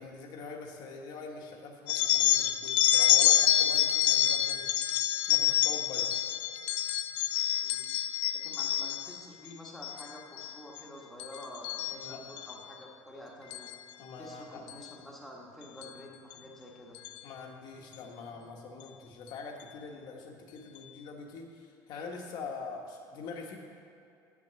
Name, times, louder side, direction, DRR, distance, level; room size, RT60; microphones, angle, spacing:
voice 1, 0.0-5.0 5.3-6.2 11.9-12.2 14.0-14.6 17.2-23.6, left 4 dB, 50° left, 2 dB, 1.2 m, -44 dB
sound 1, 1.9-9.2 9.7-10.1 10.4-10.8 11.2-12.5 13.5-13.7 14.7-14.9 15.8-15.9 16.3-16.4 16.9-17.2, left 13 dB, 75° left, 0.4 m, -27 dB
voice 2, 8.3-13.7 14.2-17.0, equal, 5° left, -2 dB, 1.2 m, -48 dB
8.5 x 6.1 x 6.8 m, 2.5 s
cardioid pair, 175°, 9 cm